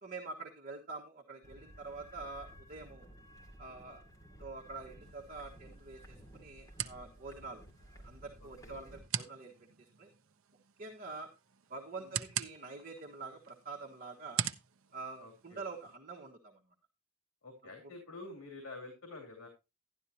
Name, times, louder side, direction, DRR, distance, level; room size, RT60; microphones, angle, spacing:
voice 1, 0.0-3.1 3.6-4.0 4.4-7.6 8.0-9.5 9.8-10.1 10.8-11.3 11.7-14.4 14.9-16.6, right 3 dB, 40° right, 0 dB, 1.4 m, -46 dB
sound 1, 1.4-9.0, equal, 15° left, 2.5 m, -55 dB
sound 2, 5.0-16.0, right 10 dB, 65° right, 0.7 m, -44 dB
voice 2, 8.4-8.8 12.0-12.2 15.2-15.6 17.4-19.5, left 2 dB, 85° left, 2 dB, 2.9 m, -49 dB
11.5 x 11.5 x 2.8 m, 0.26 s
head